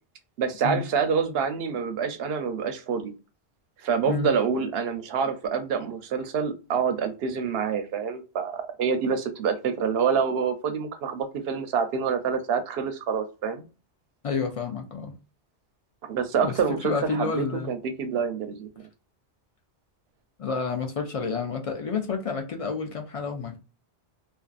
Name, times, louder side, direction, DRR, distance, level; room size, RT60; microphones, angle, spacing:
voice 1, 0.4-3.1 3.8-13.6 16.1-18.9, right 6 dB, 70° right, 0.8 m, -27 dB
voice 2, 14.2-15.1 16.4-17.7 20.4-23.6, left 5 dB, 65° left, 0.3 m, -29 dB
2.4 x 2.3 x 2.3 m
omnidirectional pair, 1.1 m